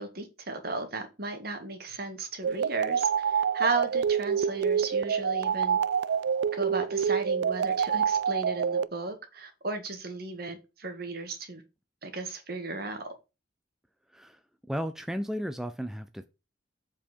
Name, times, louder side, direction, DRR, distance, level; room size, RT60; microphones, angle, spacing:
voice 1, 0.0-5.8 6.5-11.6 12.0-13.1, right 3 dB, 55° right, 1.8 m, -35 dB
sound 1, 2.4-8.9, right 7 dB, 70° right, 0.4 m, -27 dB
voice 2, 14.1-16.3, equal, ahead, 0.5 m, -34 dB
7.6 x 4.6 x 5.2 m
head